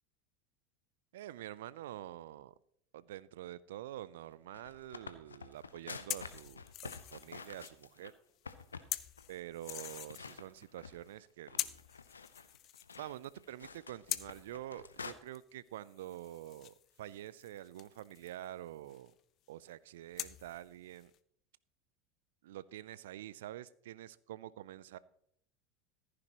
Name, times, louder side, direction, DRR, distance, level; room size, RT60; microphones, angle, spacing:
voice 1, 1.1-2.5 2.9-8.1 9.3-11.8 13.0-19.1 19.5-21.1 22.4-25.0, right 13 dB, 70° right, 0.4 m, -47 dB
sound 1, 4.3-8.1 8.5-8.9 9.2-9.3 9.7-11.1 11.5-15.1, left 5 dB, 85° left, 0.6 m, -49 dB
sound 2, 6.1-8.1 8.4-10.7 11.0-11.2 11.6-13.7 14.0-15.5 15.8-19.1 20.1-21.2, left 13 dB, 45° left, 0.6 m, -45 dB
14.5 x 9.8 x 3.0 m
figure-of-eight pair, 80°, 0 cm